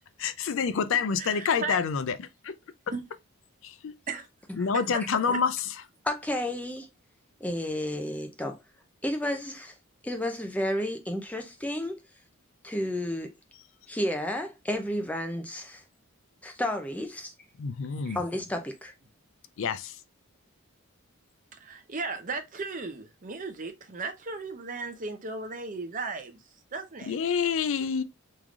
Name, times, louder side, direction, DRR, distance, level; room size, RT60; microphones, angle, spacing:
voice 1, 0.2-2.5 3.6-3.9 4.6-5.7 17.6-18.2 19.6-20.0 27.1-28.0, left 6 dB, 65° left, 0.4 m, -28 dB
voice 2, 1.2-1.8 2.9-3.0 4.1-4.3 18.1-18.2 21.6-26.4 26.7-27.2, right 4 dB, 35° right, 0.7 m, -36 dB
voice 3, 6.0-6.9 7.4-8.6 9.0-9.7 10.0-12.0 12.6-13.3 13.9-15.8 16.4-17.3 17.9-18.9, left 1 dB, 5° left, 0.5 m, -31 dB
3.6 x 3.2 x 2.4 m
head